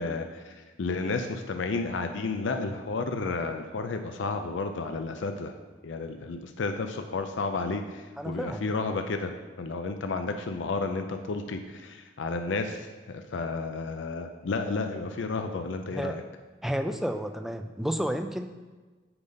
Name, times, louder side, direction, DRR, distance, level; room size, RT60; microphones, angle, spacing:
voice 1, 0.0-5.5 5.8-9.3 9.6-16.2, left 3 dB, 75° left, 6 dB, 0.5 m, -32 dB
voice 2, 8.2-8.7 15.9-16.2 16.6-18.5, equal, ahead, 7 dB, 0.3 m, -31 dB
8.8 x 3.9 x 5.2 m, 1.3 s
head